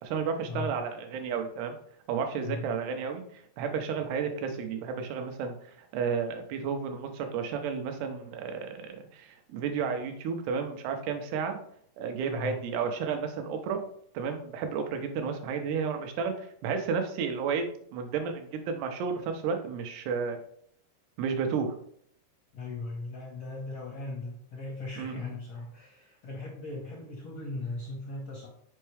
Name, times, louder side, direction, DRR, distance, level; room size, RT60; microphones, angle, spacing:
voice 1, 0.0-1.8 2.1-11.6 12.0-13.8 14.1-20.4 21.2-21.7 25.0-25.3, right 6 dB, 90° right, 5 dB, 2.8 m, -32 dB
voice 2, 12.2-12.6 22.5-28.5, left 3 dB, 80° left, -2 dB, 1.4 m, -38 dB
6.5 x 4.5 x 3.2 m, 0.65 s
omnidirectional pair, 4.5 m